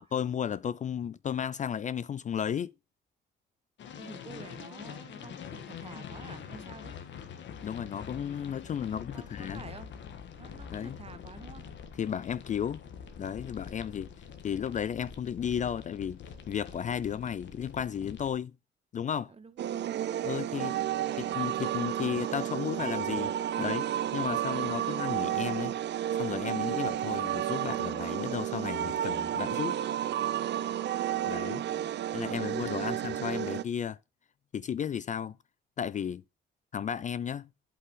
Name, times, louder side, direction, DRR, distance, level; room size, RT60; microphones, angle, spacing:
voice 1, 0.1-2.7 7.6-9.6 10.7-11.0 12.0-12.8 13.2-14.1 14.4-16.2 16.5-18.5 18.9-19.3 20.2-20.7 21.2-25.7 26.1-29.8 31.2-31.6 32.1-34.0 34.5-35.4 35.8-36.2 36.7-37.5, left 8 dB, 40° left, 0.4 m, -34 dB
sound 1, 3.8-18.3, left 7 dB, 70° left, 1.5 m, -45 dB
voice 2, 4.0-6.9 8.8-9.9 10.4-11.7 19.3-19.9 20.3-20.7 31.6-31.9, right 5 dB, 30° right, 1.2 m, -50 dB
sound 2, 19.6-33.6, right 11 dB, 60° right, 0.6 m, -32 dB
8.0 x 5.7 x 3.7 m
cardioid pair, 90°, 20 cm